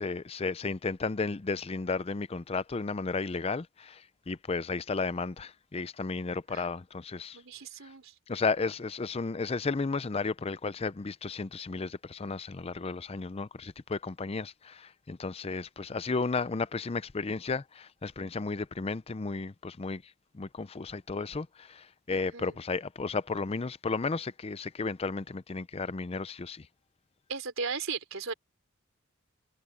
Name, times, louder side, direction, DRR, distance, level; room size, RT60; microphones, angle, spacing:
voice 1, 0.0-7.4 8.3-20.0 20.3-26.7, left 4 dB, 30° left, 0.5 m, -33 dB
voice 2, 7.3-8.1 22.1-22.6 27.3-28.3, right 5 dB, 75° right, 3.9 m, -37 dB
head